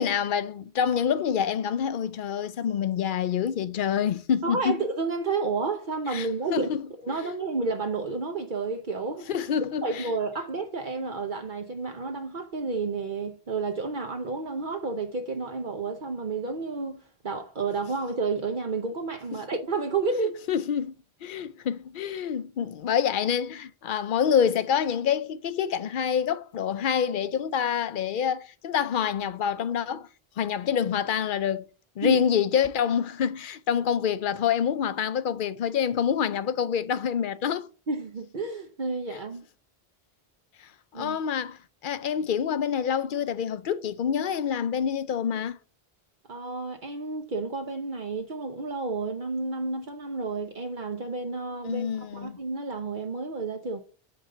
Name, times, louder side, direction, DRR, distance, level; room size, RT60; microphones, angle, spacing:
voice 1, 0.0-4.8 6.1-6.8 7.2-7.3 9.3-10.1 20.5-20.9 21.2-30.1 30.4-31.7 32.0-37.7 39.1-39.2 40.6-45.6 51.6-52.4, left 8 dB, 60° left, 0.7 m, -27 dB
voice 2, 4.4-6.7 7.0-9.3 9.8-20.4 32.0-32.2 37.9-39.4 40.9-41.2 46.3-53.8, right 4 dB, 55° right, 0.9 m, -31 dB
8.5 x 3.9 x 6.6 m
omnidirectional pair, 1.0 m